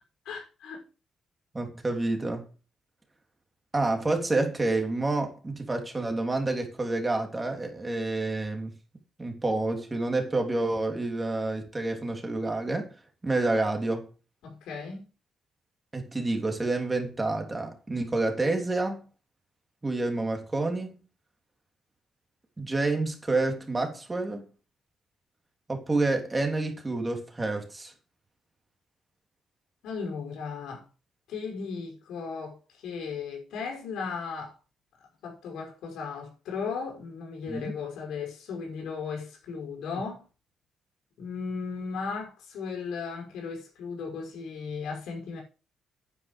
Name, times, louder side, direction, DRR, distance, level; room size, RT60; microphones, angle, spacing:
voice 1, 0.3-0.8 14.4-15.1 29.8-30.8 31.3-34.5 35.2-40.3 41.2-45.4, left 5 dB, 85° left, 5.6 m, -36 dB
voice 2, 1.5-2.5 3.7-8.7 9.2-12.9 13.2-14.1 15.9-19.0 19.8-20.9 22.6-24.5 25.7-27.9 37.5-37.7, right 2 dB, 20° right, 3.3 m, -28 dB
9.8 x 9.5 x 5.2 m
cardioid pair, 105°, 0 cm